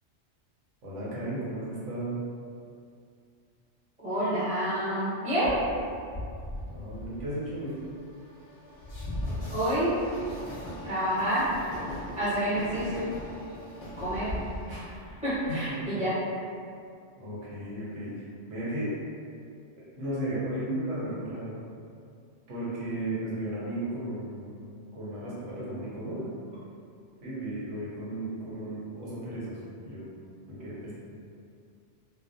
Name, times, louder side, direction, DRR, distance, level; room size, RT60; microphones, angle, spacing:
voice 1, 0.8-2.2 6.7-7.8 15.5-15.9 17.2-18.2 18.5-18.9 20.0-21.6 22.5-24.4 24.9-26.3 27.2-30.0 30.6-30.9, right 1 dB, 90° right, -8 dB, 1.1 m, -34 dB
voice 2, 4.0-5.6 9.5-10.0 10.8-11.5 12.2-13.1 14.0-14.3 14.7-14.9 15.2-16.1, right 1 dB, 5° right, -13 dB, 0.8 m, -28 dB
Train, 5.4-15.8, left 1 dB, 40° left, 0.6 m, -39 dB
2.5 x 2.1 x 2.6 m, 2.4 s
omnidirectional pair, 1.2 m